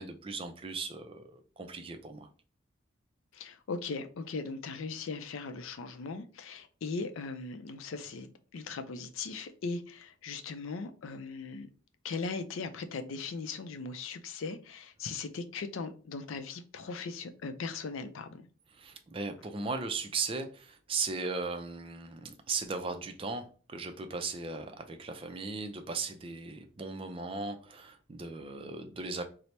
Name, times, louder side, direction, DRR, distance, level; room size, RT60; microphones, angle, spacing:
voice 1, 0.0-2.3 18.7-29.2, right 4 dB, 25° right, 0.3 m, -37 dB
voice 2, 3.3-11.7 12.0-18.5, left 4 dB, 80° left, 0.4 m, -39 dB
4.2 x 2.0 x 3.2 m
head